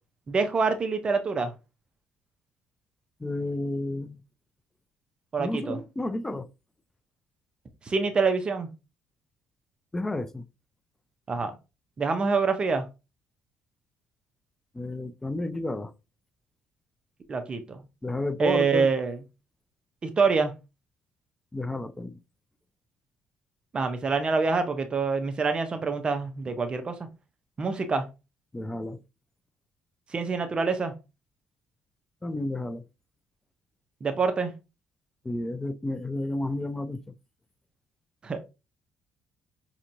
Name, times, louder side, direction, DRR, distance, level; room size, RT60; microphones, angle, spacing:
voice 1, 0.3-1.5 5.3-5.8 7.9-8.7 11.3-11.5 12.0-12.9 17.3-17.8 18.4-19.2 20.2-20.5 23.7-26.9 27.6-28.1 30.1-30.9 34.0-34.5 38.2-38.4, right 4 dB, 35° right, 0.6 m, -26 dB
voice 2, 3.2-4.2 5.4-6.5 9.9-10.4 14.7-15.9 18.0-18.9 21.5-22.2 28.5-29.0 32.2-32.8 35.2-37.0, left 2 dB, 15° left, 0.4 m, -31 dB
5.3 x 2.9 x 2.5 m
cardioid pair, 105°, 3 cm